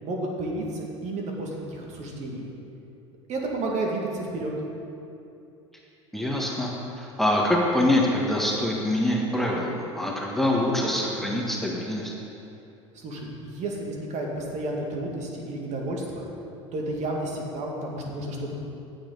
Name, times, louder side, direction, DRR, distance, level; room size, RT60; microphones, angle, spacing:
voice 1, 0.0-2.5 3.3-4.5 12.9-16.3 16.7-18.6, right 2 dB, 45° right, -1 dB, 2.1 m, -31 dB
voice 2, 6.1-12.1, left 1 dB, ahead, -2 dB, 1.6 m, -25 dB
15.5 x 7.4 x 4.0 m, 2.8 s
hypercardioid pair, 75°, 16 cm